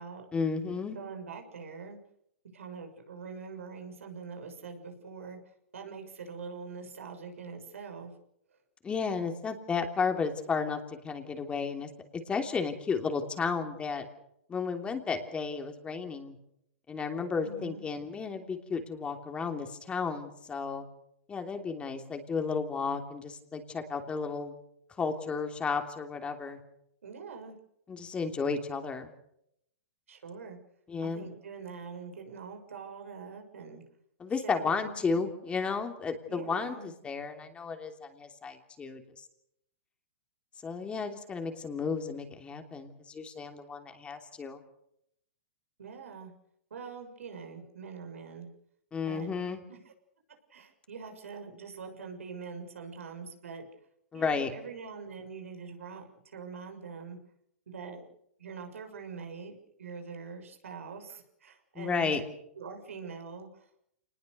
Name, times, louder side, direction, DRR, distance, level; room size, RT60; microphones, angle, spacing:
voice 1, 0.3-1.0 8.8-14.0 14.5-16.4 16.9-20.8 21.3-24.5 25.0-26.6 27.9-29.1 30.9-31.3 34.2-39.3 40.6-44.6 48.9-49.6 54.1-54.5 61.7-62.2, left 5 dB, 15° left, 5 dB, 3.1 m, -33 dB
voice 2, 0.9-2.0 2.5-5.4 5.7-8.1 8.5-8.6 17.4-17.8 27.0-27.5 30.1-30.6 31.0-33.8 34.4-35.0 36.3-36.9 45.8-46.3 46.7-48.5 49.1-49.3 49.7-49.9 50.5-53.7 54.1-57.2 57.7-58.0 58.4-62.2 62.5-63.8, right 5 dB, 90° right, 4 dB, 6.7 m, -44 dB
27.5 x 20.0 x 6.8 m, 0.75 s
hypercardioid pair, 135°, 7 cm